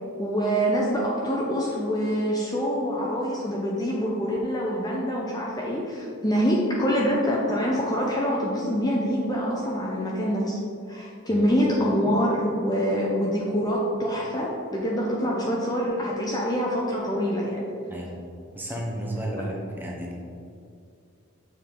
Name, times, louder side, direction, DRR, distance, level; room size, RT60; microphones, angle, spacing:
voice 1, 0.2-10.6 10.9-17.6, equal, 20° left, -3 dB, 0.6 m, -25 dB
voice 2, 17.9-18.2 18.5-20.2, right 1 dB, 10° right, -3 dB, 0.9 m, -33 dB
6.8 x 4.8 x 3.7 m, 2.3 s
head